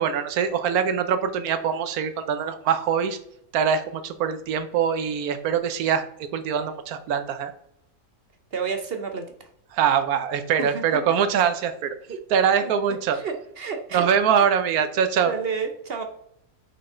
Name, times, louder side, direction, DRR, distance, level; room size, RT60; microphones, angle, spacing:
voice 1, 0.0-3.2 3.5-7.5 9.7-12.0 12.3-13.2 13.9-15.3, right 7 dB, 80° right, 9 dB, 1.2 m, -23 dB
voice 2, 8.5-9.5 10.6-11.0 12.1-12.2 12.6-12.7 13.1-14.1 14.4-14.5 15.2-16.0, right 5 dB, 50° right, 5 dB, 0.8 m, -31 dB
5.9 x 5.3 x 3.8 m, 0.75 s
omnidirectional pair, 1.6 m